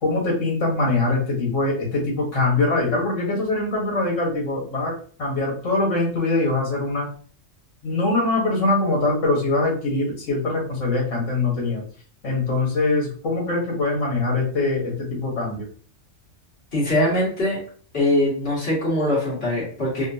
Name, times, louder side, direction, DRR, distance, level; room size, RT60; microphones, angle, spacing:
voice 1, 0.0-7.1 7.8-11.8 12.2-15.7, left 2 dB, 75° left, -3 dB, 1.7 m, -23 dB
voice 2, 16.7-17.6 17.9-20.1, left 1 dB, 50° left, -6 dB, 1.8 m, -22 dB
3.6 x 2.3 x 2.6 m, 0.43 s
omnidirectional pair, 1.3 m